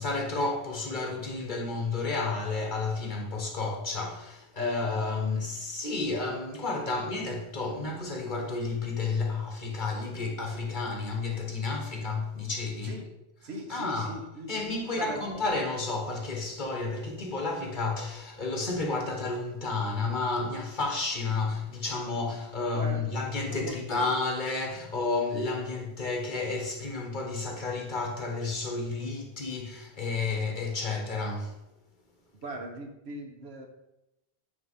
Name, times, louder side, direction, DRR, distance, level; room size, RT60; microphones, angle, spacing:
voice 1, 0.0-13.0 13.7-14.1 14.5-31.5, left 3 dB, 50° left, 1.4 m, -31 dB
voice 2, 13.4-14.5 14.9-15.2 22.7-23.2 23.4-23.8 32.4-33.7, right 1 dB, 80° right, 1.3 m, -39 dB
8.9 x 3.2 x 5.5 m
omnidirectional pair, 1.1 m